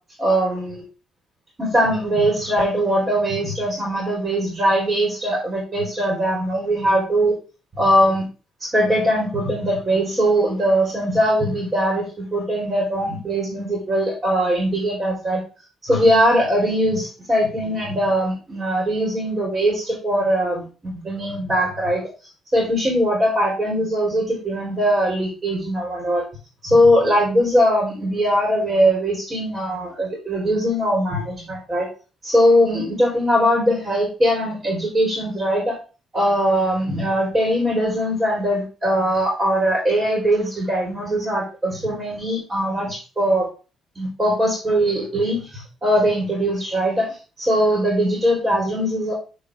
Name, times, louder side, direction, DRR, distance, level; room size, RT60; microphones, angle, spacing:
voice 1, 0.2-0.8 1.6-7.4 7.7-8.3 8.6-15.4 15.9-22.0 22.5-26.2 26.6-31.9 32.2-35.8 36.1-43.5 44.0-49.1, equal, 25° right, -2 dB, 3.7 m, -21 dB
9.5 x 4.6 x 3.5 m, 0.33 s
cardioid pair, 90°, 0 cm